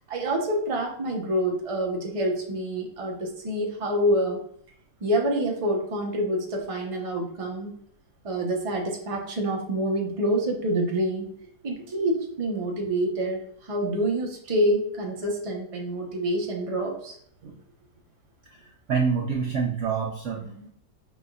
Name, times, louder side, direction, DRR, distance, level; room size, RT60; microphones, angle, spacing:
voice 1, 0.1-4.4 5.0-7.7 8.2-11.3 11.6-17.2 20.5-20.7, right 1 dB, 40° right, 0 dB, 0.4 m, -27 dB
voice 2, 18.5-20.4, right 6 dB, 90° right, 0 dB, 0.6 m, -27 dB
5.2 x 4.2 x 2.3 m, 0.64 s
omnidirectional pair, 2.0 m